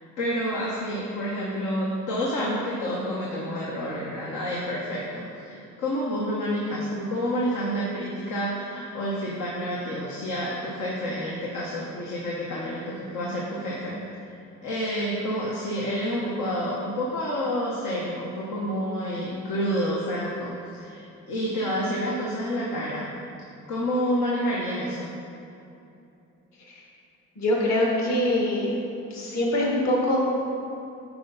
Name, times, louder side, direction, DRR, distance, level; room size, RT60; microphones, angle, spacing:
voice 1, 0.2-14.0 14.6-23.1 23.7-25.1, equal, 85° left, -5 dB, 1.2 m, -29 dB
voice 2, 27.4-28.7 29.1-30.2, left 1 dB, 60° left, -3 dB, 1.8 m, -24 dB
11.0 x 4.6 x 4.0 m, 2.7 s
cardioid pair, 90°, 30 cm